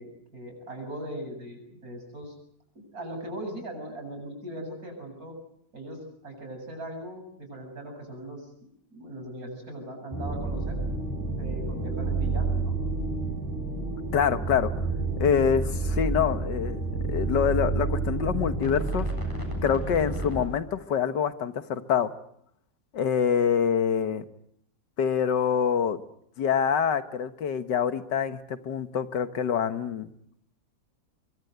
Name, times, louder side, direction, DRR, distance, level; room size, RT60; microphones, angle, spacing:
voice 1, 0.0-2.3 2.7-5.3 5.7-6.0 6.2-8.5 8.9-10.8 11.4-12.8, right 1 dB, 55° right, 4 dB, 8.6 m, -39 dB
sound 1, 10.1-20.4, right 3 dB, 10° left, 8.1 m, -29 dB
voice 2, 14.1-14.7 15.2-16.8 17.1-19.1 19.6-22.1 22.9-24.2 25.0-26.0 26.4-30.1, left 7 dB, 75° left, 11 dB, 1.9 m, -25 dB
24.0 x 24.0 x 8.0 m, 0.71 s
omnidirectional pair, 1.9 m